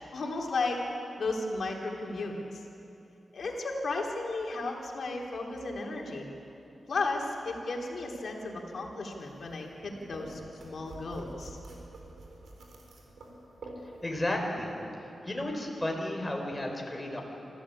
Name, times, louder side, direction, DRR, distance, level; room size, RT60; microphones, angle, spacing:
voice 1, 0.1-0.8 1.2-2.6 3.3-6.3 6.9-11.6, left 3 dB, 60° left, 0 dB, 3.5 m, -34 dB
sound 1, 9.2-14.3, right 2 dB, 80° right, 4.5 m, -48 dB
voice 2, 14.0-14.7 15.2-17.2, left 1 dB, 15° left, 1 dB, 4.2 m, -32 dB
26.5 x 15.0 x 8.7 m, 2.8 s
wide cardioid pair, 110°, 0 cm